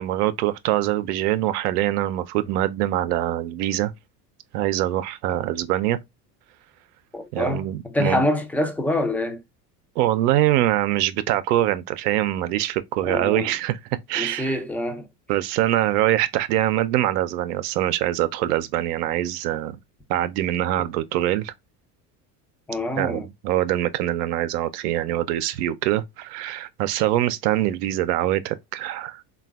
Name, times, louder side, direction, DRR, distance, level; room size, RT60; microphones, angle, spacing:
voice 1, 0.0-3.9 4.5-6.0 7.3-8.2 10.0-13.8 14.1-14.6 15.3-19.7 20.1-21.5 23.0-29.2, right 14 dB, 75° right, 0.5 m, -23 dB
voice 2, 7.1-9.4 13.0-13.5 14.2-15.1 22.7-23.3, left 1 dB, 5° left, 0.4 m, -26 dB
3.2 x 2.4 x 2.2 m
hypercardioid pair, 80°, 48 cm